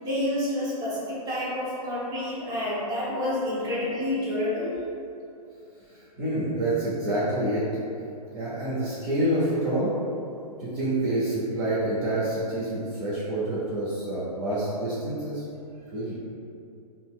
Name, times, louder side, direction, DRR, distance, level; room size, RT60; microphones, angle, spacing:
voice 1, 0.0-4.7, left 1 dB, 20° right, -8 dB, 0.9 m, -29 dB
voice 2, 6.2-7.6 8.3-9.9 10.6-15.4 15.9-16.2, right 1 dB, 40° right, -9 dB, 0.7 m, -27 dB
3.9 x 2.2 x 2.3 m, 2.6 s
hypercardioid pair, 120°, 20 cm